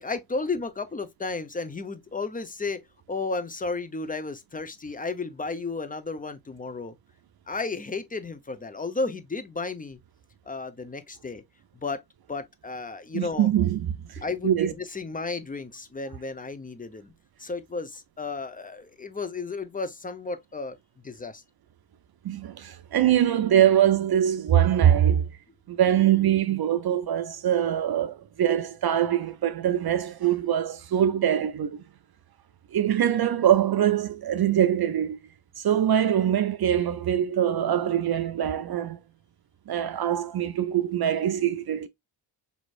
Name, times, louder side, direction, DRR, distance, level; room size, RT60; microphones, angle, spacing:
voice 1, 0.0-6.9 7.5-10.0 10.5-11.4 11.8-12.0 12.3-13.5 14.2-17.1 17.4-20.8 21.0-21.4, left 3 dB, 20° left, 0.8 m, -33 dB
voice 2, 13.1-14.7 22.2-25.3 25.7-31.8 32.7-35.2 35.6-39.0 39.7-41.9, right 10 dB, 55° right, 0.6 m, -23 dB
5.5 x 3.0 x 2.4 m
cardioid pair, 60°, 47 cm